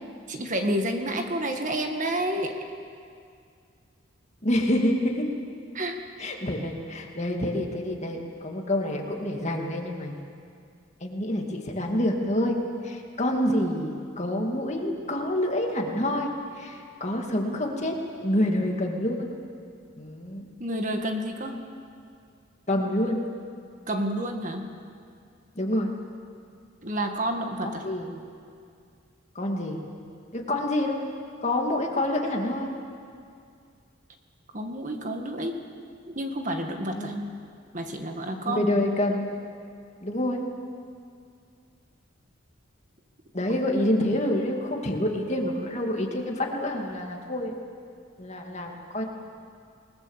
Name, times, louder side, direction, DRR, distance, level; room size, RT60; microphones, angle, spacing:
voice 1, 0.3-2.6 5.7-6.0 20.6-21.6 23.9-24.7 26.8-27.8 34.5-35.6 36.1-37.1 37.7-38.6, right 1 dB, 40° right, 4 dB, 1.7 m, -29 dB
voice 2, 4.4-5.3 6.2-10.2 11.0-12.6 12.8-19.3 20.0-20.5 22.7-23.2 25.6-25.9 27.6-28.1 29.4-29.8 30.3-31.0 31.4-32.7 37.0-37.2 38.5-39.3 40.0-40.4 43.3-47.5 48.2-49.0, left 1 dB, 35° left, 1 dB, 2.3 m, -27 dB
27.0 x 20.0 x 7.4 m, 2.3 s
head